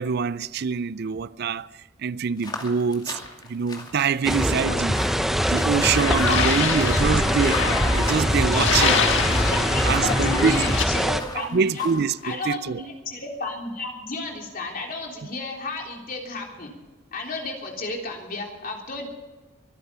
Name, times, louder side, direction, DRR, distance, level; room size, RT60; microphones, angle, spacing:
voice 1, 0.0-1.7 2.0-3.2 3.5-5.0 5.5-7.6 7.9-9.0 9.8-10.6 11.3-12.8, right 6 dB, 55° right, 0.4 m, -25 dB
sound 1, 2.4-12.4, left 2 dB, 20° left, 2.4 m, -40 dB
sound 2, 4.2-11.2, equal, ahead, 0.8 m, -23 dB
sound 3, 5.8-10.8, left 5 dB, 65° left, 1.5 m, -25 dB
voice 2, 6.3-7.1 8.5-11.9 12.2-16.7 17.1-19.0, left 3 dB, 45° left, 3.5 m, -32 dB
24.0 x 10.5 x 5.6 m
head